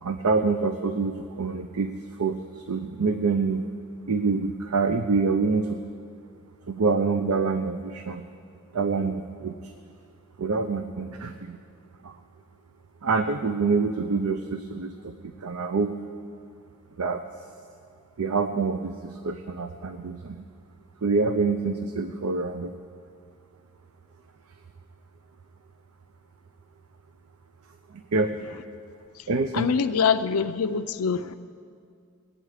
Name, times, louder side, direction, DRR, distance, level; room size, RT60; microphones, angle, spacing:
voice 1, 0.0-3.6 4.1-5.8 6.7-8.2 8.7-9.7 10.4-11.6 12.0-12.2 13.0-16.0 17.0-17.2 18.2-20.4 21.0-22.7 27.9-28.4 29.3-29.7, right 4 dB, 85° right, 8 dB, 0.6 m, -26 dB
voice 2, 29.5-31.3, left 6 dB, 85° left, 10 dB, 0.5 m, -24 dB
20.5 x 8.8 x 4.9 m, 2.3 s
head